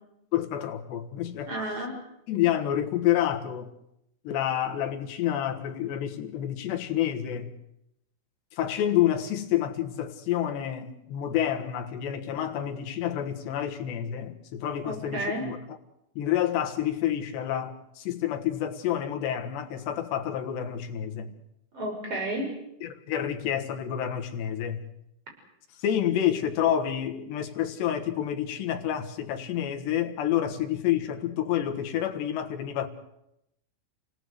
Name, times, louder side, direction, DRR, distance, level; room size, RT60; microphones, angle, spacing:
voice 1, 0.3-1.6 2.3-3.7 4.2-7.6 8.5-15.8 16.2-21.3 22.8-24.8 25.8-32.9, left 11 dB, 65° left, 3.3 m, -28 dB
voice 2, 1.5-2.0 14.8-15.5 21.7-22.5, right 1 dB, 30° right, 6.6 m, -32 dB
29.5 x 18.0 x 8.0 m
omnidirectional pair, 5.9 m